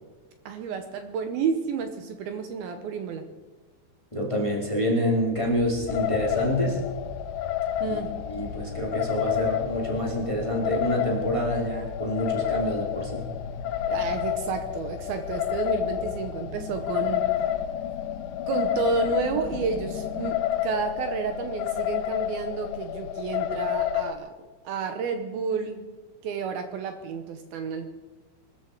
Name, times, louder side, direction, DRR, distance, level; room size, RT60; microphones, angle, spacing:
voice 1, 0.5-3.3 7.8-8.1 13.9-17.3 18.5-24.3 24.6-25.9 26.2-27.9, right 5 dB, 75° right, 7 dB, 2.3 m, -31 dB
voice 2, 4.1-6.8 7.8-8.0 8.3-13.3, equal, 15° left, -1 dB, 1.2 m, -27 dB
sound 1, 5.3-20.3, left 4 dB, 65° left, 3.4 m, -41 dB
sound 2, 5.9-24.1, left 11 dB, 85° left, 3.1 m, -30 dB
23.0 x 13.0 x 4.6 m, 1.2 s
omnidirectional pair, 5.5 m